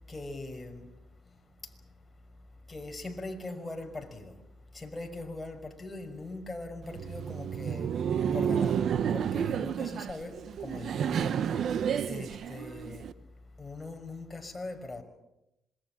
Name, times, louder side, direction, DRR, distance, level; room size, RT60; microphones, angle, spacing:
voice 1, 0.1-0.8 2.7-4.4 4.7-7.9 8.3-11.4 12.1-13.1 13.6-15.0, left 2 dB, 15° left, 5.6 m, -41 dB
Laughter, 6.8-13.1, right 8 dB, 65° right, 1.1 m, -30 dB
26.5 x 22.0 x 7.4 m
cardioid pair, 90°, 0 cm